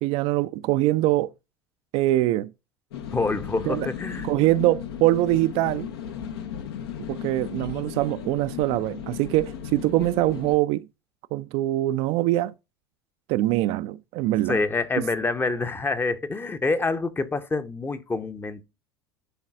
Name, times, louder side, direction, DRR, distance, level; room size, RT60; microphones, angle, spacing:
voice 1, 0.0-1.3 1.9-2.5 3.7-3.9 4.2-5.9 7.1-10.9 11.3-12.5 13.3-14.6, right 16 dB, 50° right, 0.4 m, -23 dB
sound 1, 2.9-10.6, left 8 dB, 65° left, 0.8 m, -36 dB
voice 2, 3.1-4.3 14.5-18.6, left 3 dB, 15° left, 0.7 m, -26 dB
11.0 x 3.9 x 2.5 m
figure-of-eight pair, 75°, 14 cm